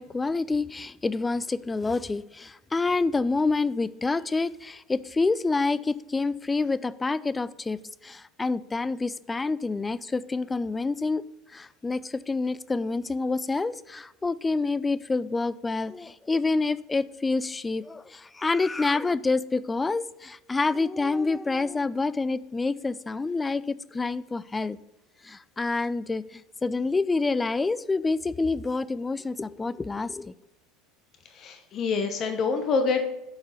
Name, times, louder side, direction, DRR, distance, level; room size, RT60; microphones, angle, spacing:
voice 1, 0.0-11.2 11.5-24.8 25.2-30.3, left 3 dB, 15° left, 17 dB, 0.3 m, -27 dB
voice 2, 31.3-33.1, left 4 dB, 45° left, 7 dB, 0.9 m, -26 dB
7.6 x 4.4 x 5.6 m, 0.97 s
hypercardioid pair, 75°, 0 cm